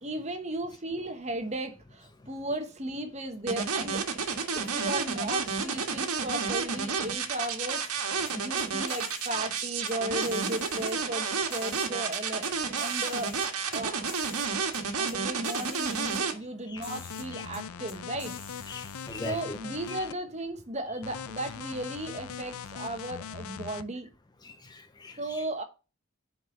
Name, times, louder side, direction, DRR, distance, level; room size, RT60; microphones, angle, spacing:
voice 1, 0.0-4.0 4.5-12.5 12.8-13.4 13.7-14.2 14.9-18.4 19.2-24.1 25.2-25.6, right 1 dB, 30° right, 1.2 m, -35 dB
sound 1, 3.5-16.3, right 5 dB, 90° right, 1.6 m, -30 dB
sound 2, 8.3-9.3 9.6-9.9 10.2-10.9 11.5-12.5 12.8-13.8 14.1-14.5 14.7-14.8 15.1-15.2 15.4-16.2 16.8-17.2 17.5-17.6 17.9-19.2, left 4 dB, 40° left, 2.8 m, -47 dB
sound 3, 16.7-20.1 21.0-23.8, left 7 dB, 80° left, 0.5 m, -41 dB
voice 2, 18.7-19.6 24.4-25.4, left 2 dB, 20° left, 0.4 m, -41 dB
6.3 x 4.7 x 6.3 m
head